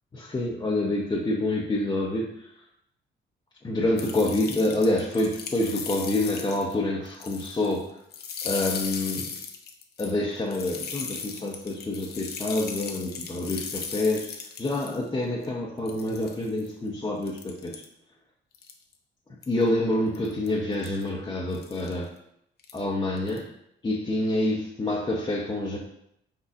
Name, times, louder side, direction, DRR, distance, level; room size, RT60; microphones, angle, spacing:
voice 1, 0.1-2.3 3.6-7.9 8.4-9.3 10.0-14.3 14.6-17.7 19.5-22.1 22.7-23.5 23.8-25.8, left 1 dB, 20° left, -4 dB, 0.7 m, -27 dB
sound 1, 4.0-6.7 7.1-7.8 8.1-15.0 15.4-15.5 15.9-16.7 17.2-17.8 18.5-18.9 19.4-19.6 20.1-20.5 20.8-21.0 21.5-21.9 22.6-22.8 23.2-23.4, left 6 dB, 55° left, 0.6 m, -37 dB
4.7 x 4.1 x 2.4 m, 0.75 s
cardioid pair, 90°, 20 cm